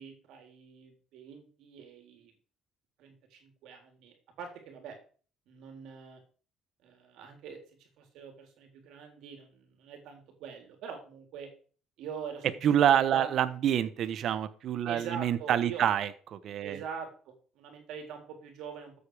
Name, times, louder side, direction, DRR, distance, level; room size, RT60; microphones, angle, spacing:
voice 1, 0.0-2.3 3.0-5.0 5.5-6.2 6.8-11.5 12.0-12.6 13.1-13.3 14.9-15.9 16.6-19.0, right 7 dB, 75° right, 4 dB, 3.7 m, -44 dB
voice 2, 12.6-16.8, right 9 dB, 60° right, 13 dB, 1.2 m, -27 dB
13.5 x 8.4 x 5.0 m, 0.41 s
cardioid pair, 105°, 0 cm